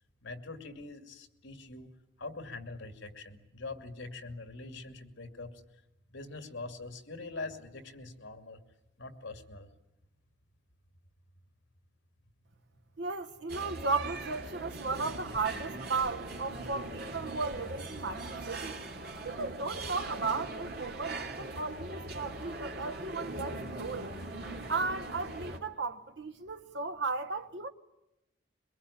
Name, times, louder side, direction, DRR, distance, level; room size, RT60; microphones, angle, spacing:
voice 1, 0.2-1.9 2.2-5.5 6.1-8.6 9.0-9.7, left 3 dB, 85° left, 2.5 m, -43 dB
voice 2, 13.0-18.8 19.2-24.1 24.7-27.7, right 4 dB, 70° right, 1.1 m, -35 dB
sound 1, 13.5-25.6, right 2 dB, 55° right, 2.7 m, -41 dB
23.0 x 22.5 x 10.0 m
head